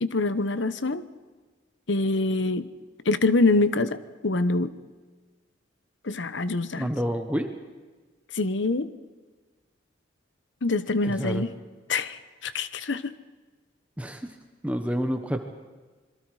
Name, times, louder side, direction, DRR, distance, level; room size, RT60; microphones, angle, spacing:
voice 1, 0.0-1.0 1.9-2.7 3.1-4.0 4.2-4.7 6.0-6.9 8.3-8.9 10.6-11.5 11.9-13.1, left 2 dB, 70° left, 14 dB, 1.0 m, -25 dB
voice 2, 6.8-7.5 11.0-11.5 14.0-14.3 14.6-15.4, equal, 5° right, 6 dB, 1.1 m, -28 dB
26.5 x 22.5 x 4.9 m, 1.3 s
head